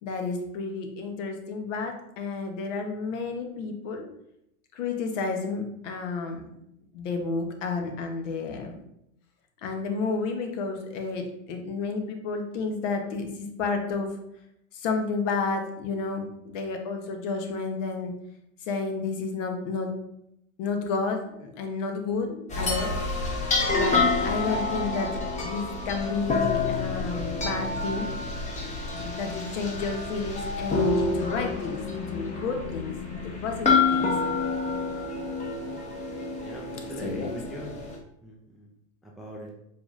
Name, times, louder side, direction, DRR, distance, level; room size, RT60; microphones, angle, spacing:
voice 1, 0.0-4.1 4.7-6.5 6.9-8.8 9.6-14.2 14.7-18.1 18.6-19.9 20.6-22.9 23.7-28.3 29.0-32.9 33.2-34.1 36.8-37.4, left 4 dB, 60° left, 4 dB, 1.0 m, -31 dB
sound 1, 22.5-38.0, left 4 dB, 15° left, 0.8 m, -28 dB
voice 2, 36.4-37.8 38.2-38.7 39.0-39.5, equal, ahead, -2 dB, 0.3 m, -40 dB
4.7 x 3.6 x 2.5 m, 0.79 s
hypercardioid pair, 110°, 41 cm